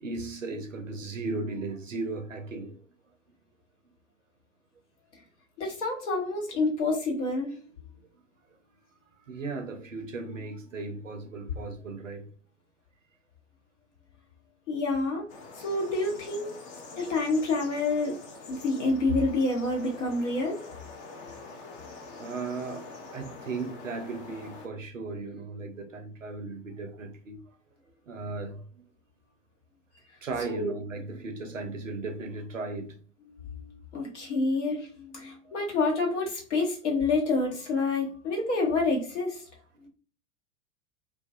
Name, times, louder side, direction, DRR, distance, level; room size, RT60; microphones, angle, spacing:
voice 1, 0.0-2.8 9.3-12.3 22.2-27.4 28.1-28.8 30.2-33.0 35.4-35.6 39.7-39.9, right 3 dB, 90° right, 0.5 m, -36 dB
voice 2, 5.6-7.6 14.7-15.3 15.5-16.5 17.0-18.2 18.5-20.6 30.5-30.7 33.3-39.4, left 3 dB, 70° left, 1.0 m, -28 dB
sound 1, 15.3-24.7, left 3 dB, 35° left, 0.6 m, -45 dB
2.4 x 2.2 x 2.5 m
figure-of-eight pair, 85°, 37 cm